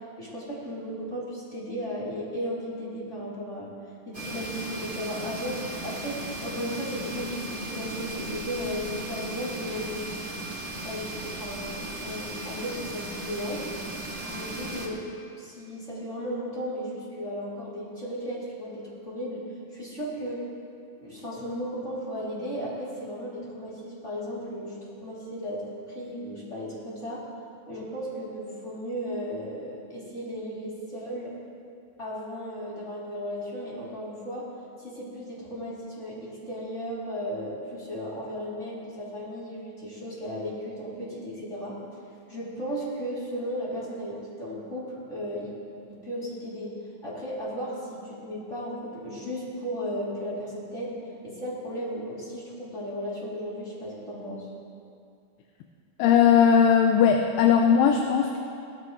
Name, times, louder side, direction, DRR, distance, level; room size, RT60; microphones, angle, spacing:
voice 1, 0.2-3.7 4.1-10.1 10.8-13.7 14.3-15.0 15.4-19.4 19.7-20.4 21.0-24.8 25.0-25.6 25.9-27.2 27.7-31.3 32.0-34.4 34.8-41.7 42.3-45.5 45.9-46.7 47.0-51.0 51.2-54.5, equal, 20° left, -8 dB, 3.1 m, -35 dB
sound 1, 4.1-14.9, right 1 dB, 25° right, 1.8 m, -36 dB
voice 2, 56.0-58.4, left 7 dB, 80° left, 4 dB, 2.3 m, -19 dB
19.5 x 13.0 x 3.2 m, 2.5 s
omnidirectional pair, 4.1 m